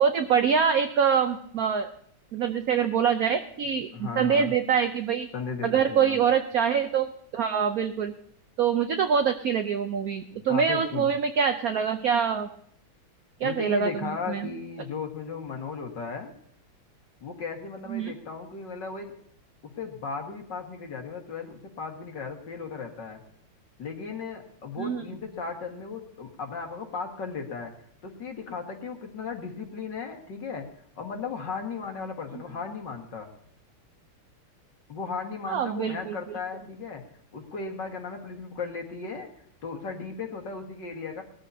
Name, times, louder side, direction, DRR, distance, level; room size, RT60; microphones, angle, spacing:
voice 1, 0.0-1.9 2.3-5.3 5.6-8.1 8.6-12.5 13.4-14.5 17.9-18.1 24.8-25.0 35.5-36.2, right 7 dB, 65° right, 8 dB, 0.9 m, -25 dB
voice 2, 3.9-4.5 5.3-6.2 10.3-11.1 13.4-16.3 17.2-19.1 19.8-23.2 23.8-27.7 28.0-30.7 31.0-33.3 34.9-37.0 37.3-39.3 39.6-41.2, left 5 dB, 55° left, 3 dB, 2.3 m, -36 dB
19.5 x 13.5 x 2.8 m, 0.67 s
omnidirectional pair, 2.4 m